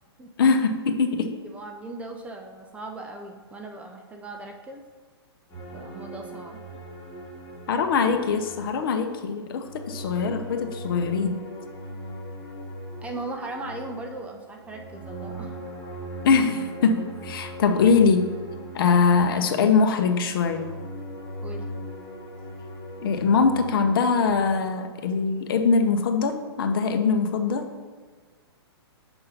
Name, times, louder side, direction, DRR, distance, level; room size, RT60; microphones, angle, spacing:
voice 1, 0.4-1.3 7.7-11.4 16.2-18.3 18.7-20.6 23.0-27.7, left 5 dB, 55° left, 6 dB, 0.8 m, -22 dB
voice 2, 1.3-4.8 5.7-6.6 13.0-15.6 21.4-21.7, right 2 dB, 10° right, 2 dB, 0.4 m, -38 dB
sound 1, 5.5-9.1 9.4-24.4, right 1 dB, 10° left, 2.2 m, -39 dB
6.9 x 3.7 x 5.7 m, 1.5 s
hypercardioid pair, 140°, 14 cm